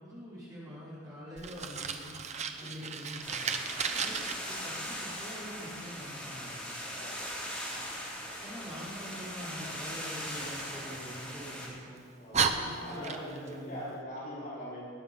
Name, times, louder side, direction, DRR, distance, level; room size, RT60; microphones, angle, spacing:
voice 1, 0.0-2.1 2.6-3.5 4.0-6.6 8.4-12.0 12.4-13.9, equal, 20° right, -10 dB, 4.8 m, -45 dB
Fire, 1.4-4.3 10.3-11.5 12.0-12.1 12.3-13.5, right 6 dB, 35° right, 0.8 m, -34 dB
sound 1, 3.2-11.7, equal, 5° left, 3.2 m, -40 dB
voice 2, 6.9-7.3 12.1-14.8, equal, 45° left, -8 dB, 4.5 m, -42 dB
20.0 x 9.7 x 5.6 m, 2.1 s
head